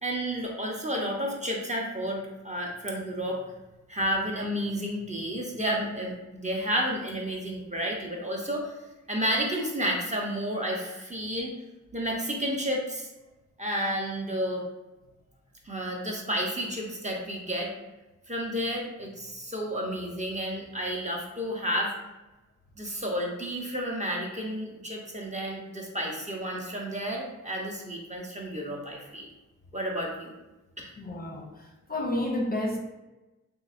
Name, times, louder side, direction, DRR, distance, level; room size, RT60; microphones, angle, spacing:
voice 1, 0.0-3.4 3.9-8.7 9.1-11.5 11.9-13.1 13.6-14.6 15.7-17.7 18.3-21.9 22.8-29.3 29.7-30.3 30.8-30.9, equal, 25° right, -1 dB, 0.7 m, -31 dB
voice 2, 31.0-32.8, left 1 dB, 30° left, 0 dB, 0.5 m, -31 dB
3.0 x 2.8 x 2.4 m, 1.1 s
cardioid pair, 55°, 31 cm